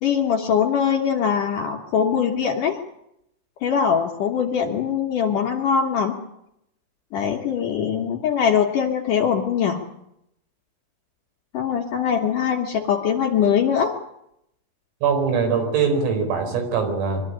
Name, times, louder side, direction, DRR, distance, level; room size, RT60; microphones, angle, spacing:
voice 1, 0.0-2.8 3.6-6.1 7.1-9.8 11.5-13.9, left 7 dB, 80° left, 1 dB, 1.8 m, -22 dB
voice 2, 15.0-17.2, right 5 dB, 85° right, 4 dB, 7.2 m, -22 dB
23.5 x 13.5 x 10.0 m, 0.82 s
omnidirectional pair, 5.8 m